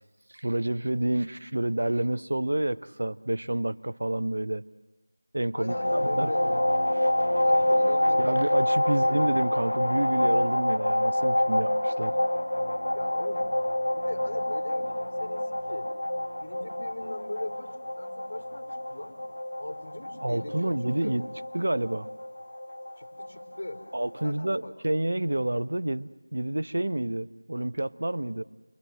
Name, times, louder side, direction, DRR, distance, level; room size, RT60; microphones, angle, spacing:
voice 1, 0.3-4.7 5.3-6.6 8.2-12.1 20.2-21.3 21.5-22.1 23.9-28.4, right 1 dB, 65° right, 14 dB, 0.8 m, -29 dB
voice 2, 5.5-6.4 7.4-8.4 8.8-9.0 12.9-13.5 13.9-15.9 16.4-19.2 19.6-20.7 21.0-21.1 23.0-23.8 24.2-24.7, left 1 dB, 60° left, 5 dB, 3.9 m, -39 dB
sound 1, 5.7-24.3, left 1 dB, 90° left, 1.7 m, -27 dB
29.0 x 22.5 x 7.9 m, 1.2 s
figure-of-eight pair, 170°, 0 cm